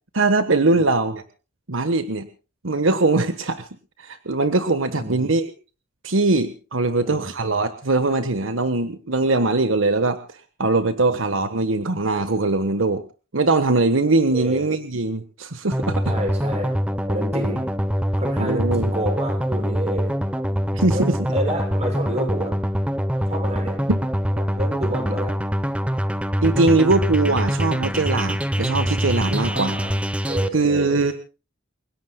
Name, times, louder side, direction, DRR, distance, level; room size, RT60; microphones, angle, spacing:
voice 1, 0.1-1.2 1.7-2.3 2.6-3.7 4.0-5.5 6.0-10.2 10.6-13.0 13.3-16.0 18.4-18.9 20.7-21.2 23.9-24.0 26.4-29.8 30.5-31.1, right 3 dB, 80° right, 10 dB, 1.3 m, -21 dB
voice 2, 4.9-5.3 6.9-7.3 14.3-14.7 16.1-16.7 17.1-17.6 18.1-20.1 20.9-22.5 23.3-23.8 24.4-25.4 29.5-31.1, right 1 dB, 30° right, 3 dB, 6.9 m, -29 dB
sound 1, 15.7-30.5, equal, 5° right, 0.8 m, -24 dB
29.0 x 17.0 x 2.3 m, 0.35 s
head